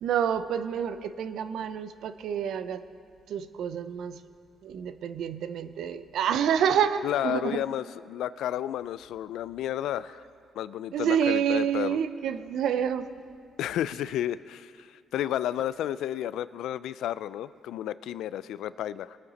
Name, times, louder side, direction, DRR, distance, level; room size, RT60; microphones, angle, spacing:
voice 1, 0.0-2.8 3.3-4.2 4.6-7.6 10.9-13.0, right 8 dB, 75° right, 11 dB, 0.6 m, -28 dB
voice 2, 7.0-10.2 10.6-12.0 13.6-19.2, left 11 dB, 80° left, 17 dB, 0.3 m, -32 dB
20.0 x 8.7 x 4.1 m, 2.3 s
cardioid pair, 90°, 0 cm